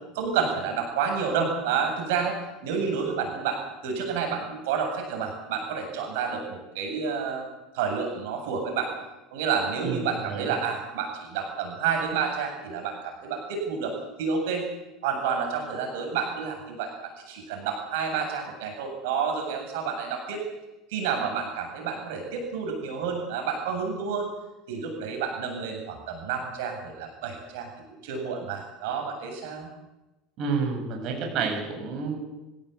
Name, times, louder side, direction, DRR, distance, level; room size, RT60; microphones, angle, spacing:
voice 1, 0.1-7.4 7.7-8.9 9.3-14.6 15.0-20.4 20.9-24.3 24.7-27.7 28.0-29.7, right 6 dB, 80° right, 3 dB, 8.0 m, -29 dB
voice 2, 9.8-10.5 30.4-32.2, right 5 dB, 50° right, 2 dB, 7.5 m, -29 dB
25.5 x 17.0 x 8.4 m, 1.0 s
supercardioid pair, 135°, 0 cm